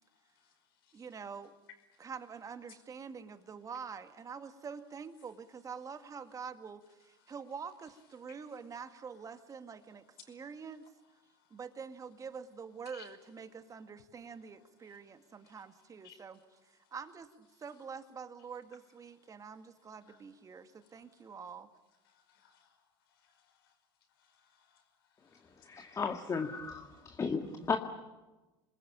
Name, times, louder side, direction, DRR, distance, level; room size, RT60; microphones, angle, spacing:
voice 1, 0.9-1.5 2.0-10.8 11.5-21.7, right 6 dB, 25° right, 9 dB, 2.0 m, -46 dB
voice 2, 22.1-22.8 23.2-23.7 24.2-24.8 25.2-25.9 27.4-27.8, left 4 dB, 70° left, 6 dB, 5.3 m, -58 dB
voice 3, 25.6-27.4 27.7-27.8, left 5 dB, 25° left, 5 dB, 1.8 m, -34 dB
27.5 x 21.0 x 8.8 m, 1.1 s
hypercardioid pair, 80°, 13 cm